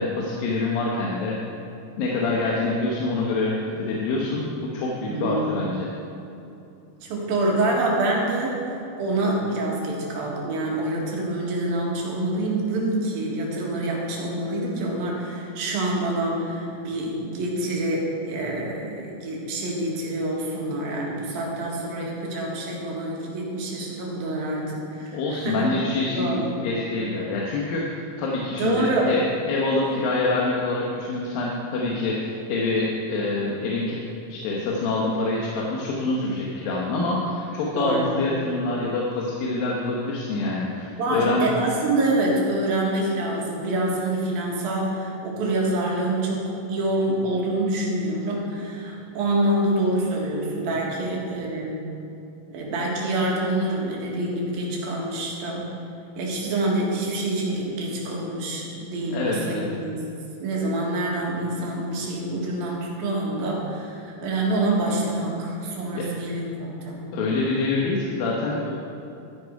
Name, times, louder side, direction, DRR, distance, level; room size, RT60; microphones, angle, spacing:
voice 1, 0.0-1.4 2.0-5.9 25.1-34.0 34.3-41.5 59.1-59.7 65.9-66.1 67.1-68.7, left 3 dB, 75° left, -3 dB, 2.8 m, -26 dB
voice 2, 5.1-5.4 7.0-8.6 9.0-25.6 26.0-26.6 28.6-29.1 37.7-38.1 41.0-51.8 52.5-55.7 56.2-60.0 60.4-67.0, right 2 dB, 75° right, -2 dB, 3.6 m, -26 dB
13.0 x 10.5 x 4.7 m, 2.8 s
omnidirectional pair, 4.3 m